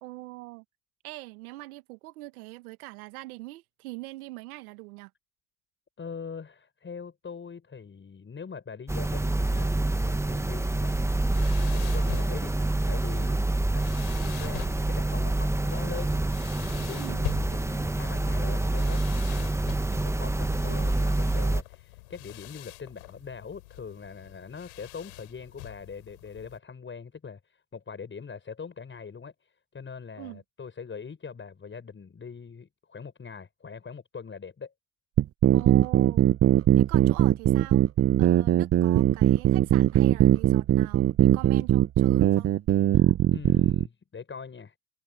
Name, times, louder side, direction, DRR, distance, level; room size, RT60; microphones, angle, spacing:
voice 1, 0.0-0.6 1.0-5.1 16.9-17.3 20.7-20.8 30.2-30.4 35.5-36.3 36.8-37.8 38.2-42.5, right 20 dB, 85° right, 1.7 m, -42 dB
voice 2, 6.0-13.4 13.7-13.8 14.2-16.2 16.7-19.0 19.9-34.7 43.3-44.8, left 5 dB, 25° left, 7.0 m, -42 dB
sound 1, 8.9-21.6, right 2 dB, 5° right, 1.1 m, -27 dB
sound 2, 10.7-26.6, left 23 dB, 85° left, 3.2 m, -45 dB
sound 3, 35.2-43.9, right 12 dB, 35° right, 0.6 m, -20 dB
supercardioid pair, 95°, 43 cm